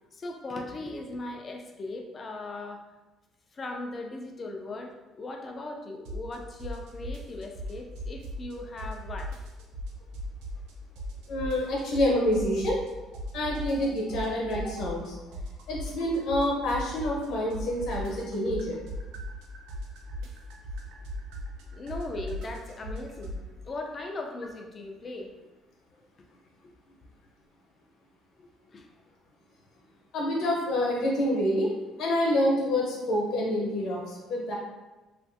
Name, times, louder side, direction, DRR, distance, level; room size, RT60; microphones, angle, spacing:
voice 1, 0.1-2.8 3.5-9.3 21.7-25.3 26.6-26.7 28.4-28.9, left 2 dB, 25° left, 3 dB, 0.3 m, -38 dB
sound 1, 6.0-6.3 6.6-8.5 8.8-10.7 11.0-12.9 13.1-17.2 17.5-23.4, left 1 dB, 75° right, 0.4 m, -37 dB
voice 2, 11.3-12.8 13.3-15.1 15.7-18.8 30.1-31.7 32.0-34.5, left 1 dB, 60° left, -2 dB, 0.8 m, -27 dB
3.0 x 2.5 x 2.5 m, 1.1 s
cardioid pair, 155°, 0 cm